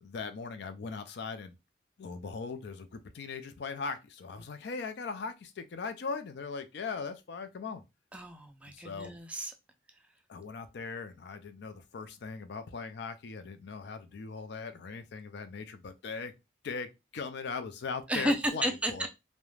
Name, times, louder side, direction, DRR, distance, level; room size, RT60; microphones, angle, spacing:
voice 1, 0.0-1.6 2.0-7.8 8.7-9.1 10.3-16.3 16.6-19.1, left 4 dB, 60° left, 0.4 m, -39 dB
voice 2, 8.1-9.5 18.1-19.1, equal, 5° right, 0.3 m, -32 dB
2.4 x 2.1 x 3.1 m
head